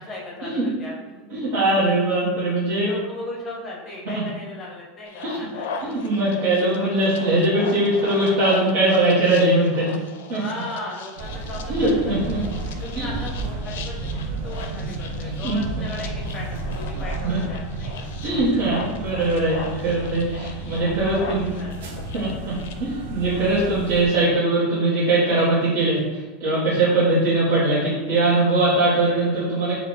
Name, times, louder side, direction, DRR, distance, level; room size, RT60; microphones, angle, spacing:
voice 1, 0.0-1.6 2.8-5.9 10.4-12.1 12.7-18.1 21.0-22.1, left 2 dB, 15° left, -3 dB, 0.7 m, -37 dB
voice 2, 1.3-2.9 4.0-4.1 5.2-5.3 5.8-10.0 10.3-10.4 11.7-12.4 12.9-13.1 15.4-15.6 17.2-17.4 18.2-21.5 22.1-29.8, right 2 dB, 50° right, -11 dB, 1.3 m, -21 dB
sound 1, 5.1-22.7, left 5 dB, 85° left, 0.4 m, -38 dB
sound 2, 11.2-24.1, right 2 dB, 90° right, 0.6 m, -32 dB
4.4 x 2.3 x 3.8 m, 1.2 s
supercardioid pair, 180°, 0 cm